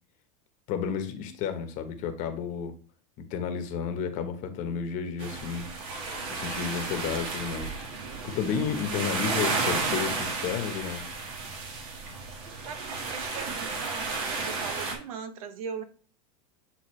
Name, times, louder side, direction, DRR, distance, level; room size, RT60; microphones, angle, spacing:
voice 1, 0.7-2.7 3.2-5.7 6.3-7.8 8.2-11.0, left 7 dB, 45° left, 7 dB, 1.2 m, -32 dB
sound 1, 5.2-14.9, right 3 dB, 55° right, 1.8 m, -32 dB
voice 2, 12.6-15.8, right 7 dB, 75° right, 10 dB, 1.0 m, -40 dB
8.6 x 3.8 x 3.2 m, 0.40 s
supercardioid pair, 130°, 18 cm